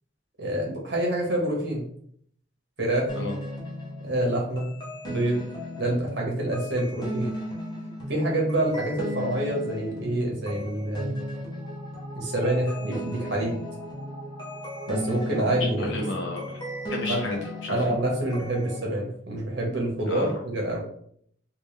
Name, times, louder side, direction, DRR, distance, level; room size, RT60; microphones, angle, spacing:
voice 1, 0.4-1.8 2.8-3.0 4.0-4.7 5.0-5.4 5.8-7.3 8.1-11.2 12.2-13.6 14.9-16.0 17.0-17.2 17.7-20.8, right 1 dB, 60° right, -1 dB, 1.3 m, -27 dB
sound 1, 3.1-18.8, left 1 dB, 20° left, 0.9 m, -36 dB
voice 2, 15.5-16.5 16.9-17.9 20.1-20.3, left 1 dB, 80° left, 0 dB, 1.0 m, -32 dB
3.6 x 2.6 x 3.2 m, 0.64 s
head